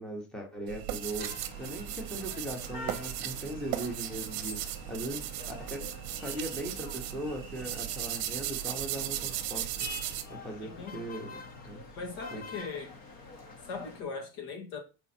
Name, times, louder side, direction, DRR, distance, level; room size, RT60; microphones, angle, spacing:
voice 1, 0.0-10.0 10.3-11.4 11.6-11.8 12.3-12.4, right 1 dB, ahead, 0.8 m, -39 dB
sound 1, 0.7-10.2, right 13 dB, 45° right, 0.8 m, -37 dB
sound 2, 1.0-14.0, left 3 dB, 45° left, 1.2 m, -47 dB
voice 2, 10.6-11.0 12.0-12.9 13.7-14.8, left 4 dB, 85° left, 2.2 m, -39 dB
6.1 x 4.3 x 4.2 m
cardioid pair, 175°, 50 cm